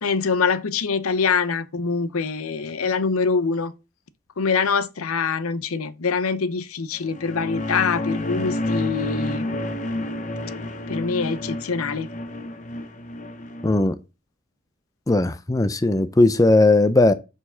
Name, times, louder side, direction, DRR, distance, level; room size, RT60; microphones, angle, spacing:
voice 1, 0.0-3.7 4.4-9.6 10.9-12.1, left 5 dB, 85° left, 0.7 m, -24 dB
sound 1, 7.0-13.7, left 1 dB, 35° left, 0.8 m, -29 dB
voice 2, 13.6-14.0 15.1-17.1, left 2 dB, 15° left, 0.4 m, -17 dB
6.5 x 4.7 x 5.6 m
head